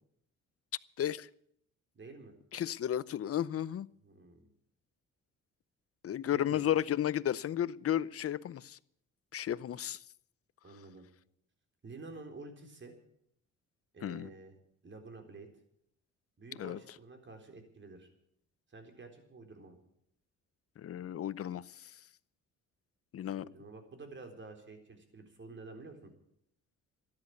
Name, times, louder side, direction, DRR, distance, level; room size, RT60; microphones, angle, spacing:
voice 1, 1.0-1.3 2.5-3.9 6.0-8.8 9.3-10.0 14.0-14.3 16.6-16.8 20.8-21.9 23.1-23.5, left 11 dB, 50° left, 0.7 m, -33 dB
voice 2, 1.9-2.3 4.0-4.5 6.3-6.6 10.6-11.1 11.8-12.9 13.9-14.5 14.8-15.5 16.4-18.1 18.7-19.8 23.3-26.1, right 3 dB, 40° right, 3.9 m, -50 dB
13.5 x 10.5 x 9.5 m
cardioid pair, 90°, 30 cm